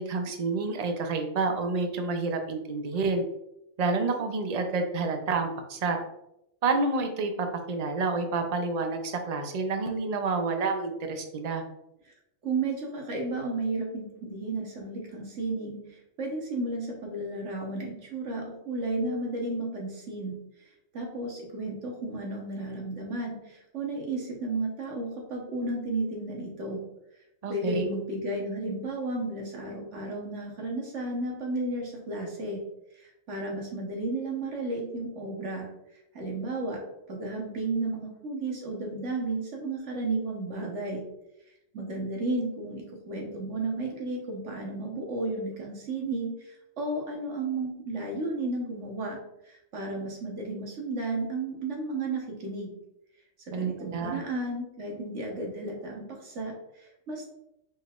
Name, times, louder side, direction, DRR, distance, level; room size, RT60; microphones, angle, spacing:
voice 1, 0.0-3.2 3.8-6.0 6.6-11.6 27.4-27.8 53.5-54.2, right 3 dB, 45° right, 5 dB, 0.5 m, -29 dB
voice 2, 12.4-20.4 20.9-26.8 27.5-32.6 33.0-35.7 36.1-36.8 37.1-41.0 41.7-49.2 49.5-52.8 53.4-57.3, right 2 dB, 65° right, 0 dB, 1.4 m, -33 dB
5.2 x 3.9 x 2.4 m, 0.82 s
omnidirectional pair, 1.3 m